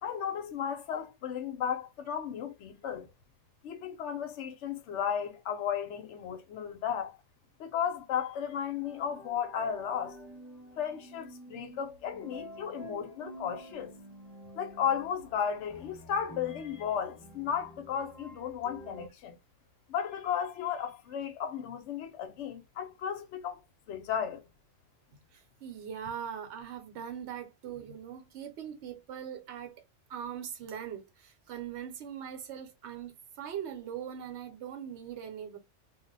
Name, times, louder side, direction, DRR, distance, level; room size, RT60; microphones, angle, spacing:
voice 1, 0.0-3.1 3.6-7.2 7.6-10.2 10.8-13.9 14.5-19.4 19.9-23.6 23.9-24.4, left 8 dB, 75° left, 0.9 m, -34 dB
sound 1, 8.8-19.1, right 1 dB, ahead, 1.0 m, -50 dB
voice 2, 25.3-29.8 30.1-35.6, right 8 dB, 70° right, 1.0 m, -41 dB
2.3 x 2.1 x 3.8 m
omnidirectional pair, 1.2 m